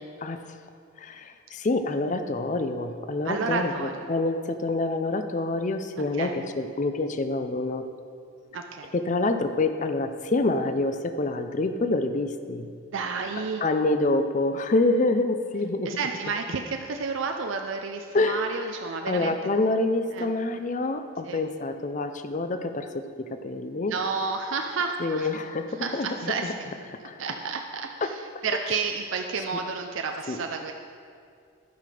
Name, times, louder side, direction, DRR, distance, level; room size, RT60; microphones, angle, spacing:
voice 1, 1.0-7.8 8.9-12.7 13.4-15.9 18.1-18.7 19.0-24.0 25.0-26.6 26.8-27.4 28.0-28.1 28.5-28.8 29.4-29.6 30.3-30.4, left 2 dB, 35° left, 9 dB, 0.5 m, -27 dB
voice 2, 3.2-4.1 6.2-6.3 8.5-8.9 12.9-13.6 15.9-19.3 20.1-20.3 21.2-21.4 23.9-25.3 25.8-26.7 27.0-30.7, right 4 dB, 65° right, 4 dB, 0.5 m, -31 dB
12.0 x 5.9 x 5.0 m, 2.4 s
head